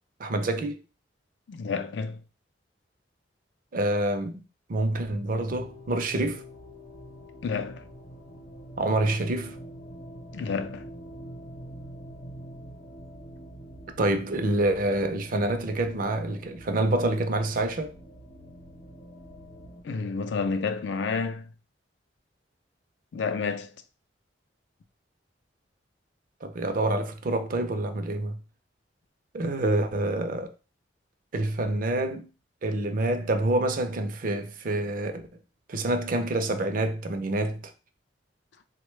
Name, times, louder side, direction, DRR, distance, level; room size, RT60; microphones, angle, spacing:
voice 1, 0.2-0.8 3.7-6.4 8.8-9.6 14.0-17.9 26.4-28.4 29.3-30.5 31.3-32.3 32.6-35.1 35.7-37.7, right 2 dB, 50° right, 0.5 m, -27 dB
voice 2, 1.5-2.2 7.4-7.8 10.3-10.9 19.8-21.5 23.1-23.7, left 5 dB, 75° left, 0.4 m, -30 dB
sound 1, 5.4-19.8, equal, 55° left, 0.7 m, -45 dB
3.8 x 2.2 x 3.1 m
head